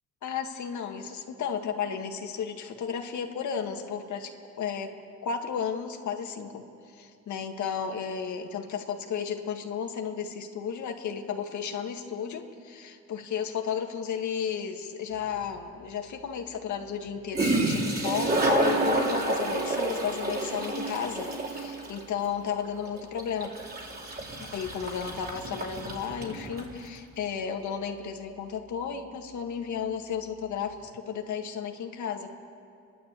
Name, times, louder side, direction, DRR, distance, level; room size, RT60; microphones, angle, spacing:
voice 1, 0.2-4.3 4.6-4.9 5.2-6.6 6.9-23.5 24.4-32.3, left 7 dB, 70° left, 3 dB, 2.0 m, -33 dB
Toilet flush, 15.3-15.4 17.1-17.2 17.3-26.7, right 2 dB, 30° right, 3.6 m, -29 dB
29.5 x 12.0 x 8.3 m, 2.5 s
cardioid pair, 90°, 30 cm